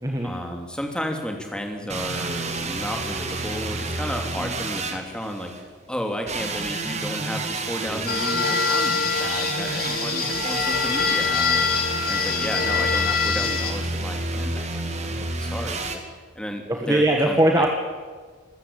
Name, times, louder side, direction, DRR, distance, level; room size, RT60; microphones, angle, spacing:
voice 1, 0.2-5.5 5.9-11.7 12.1-16.0 16.3-17.4, equal, 5° left, 3 dB, 3.0 m, -33 dB
sound 1, 1.9-5.6 6.3-16.0, right 3 dB, 35° right, 2.4 m, -30 dB
sound 2, 8.1-13.7, left 6 dB, 45° left, 2.9 m, -24 dB
voice 2, 16.7-17.7, right 1 dB, 15° right, 2 dB, 1.7 m, -20 dB
26.5 x 14.0 x 8.8 m, 1.5 s
head